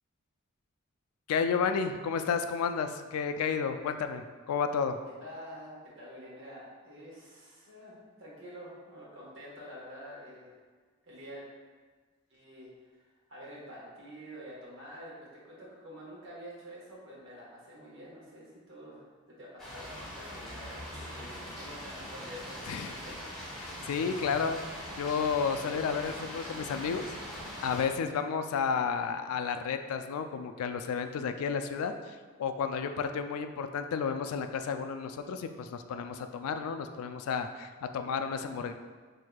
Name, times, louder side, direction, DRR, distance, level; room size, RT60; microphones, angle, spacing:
voice 1, 1.3-5.0 22.7-22.9 23.6-24.6 25.0-27.1 27.6-38.7, left 6 dB, 85° left, 9 dB, 0.3 m, -32 dB
voice 2, 5.2-10.5 11.0-11.4 12.3-23.2 23.9-24.3, equal, 60° right, -6 dB, 1.2 m, -48 dB
sound 1, 19.6-27.8, equal, ahead, 0.8 m, -42 dB
6.0 x 2.7 x 2.2 m, 1.5 s
head